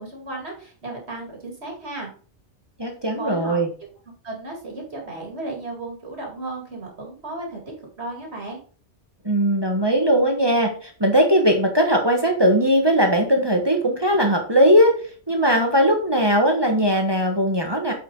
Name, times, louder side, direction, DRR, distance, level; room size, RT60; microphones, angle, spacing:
voice 1, 0.0-2.1 3.2-3.6 4.2-7.6 8.0-8.6, right 2 dB, 65° right, 0 dB, 2.7 m, -34 dB
voice 2, 2.8-3.7 9.2-14.9 15.3-17.9, equal, 20° right, 2 dB, 1.4 m, -19 dB
9.1 x 5.1 x 3.9 m, 0.42 s
omnidirectional pair, 1.2 m